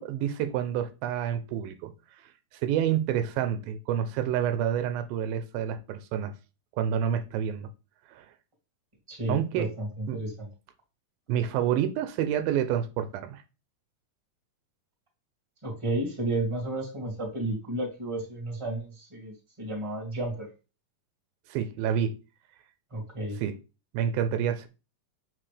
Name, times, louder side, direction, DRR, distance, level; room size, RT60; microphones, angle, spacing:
voice 1, 0.0-1.9 2.5-6.3 6.8-7.7 8.1-8.3 9.3-9.7 10.1-10.2 11.3-13.4 21.5-22.1 23.4-23.5 23.9-24.7, right 9 dB, 90° right, 2.5 m, -28 dB
voice 2, 9.1-10.5 15.6-20.5 22.9-23.4, right 1 dB, 10° right, 1.8 m, -32 dB
7.5 x 4.8 x 3.3 m
omnidirectional pair, 4.0 m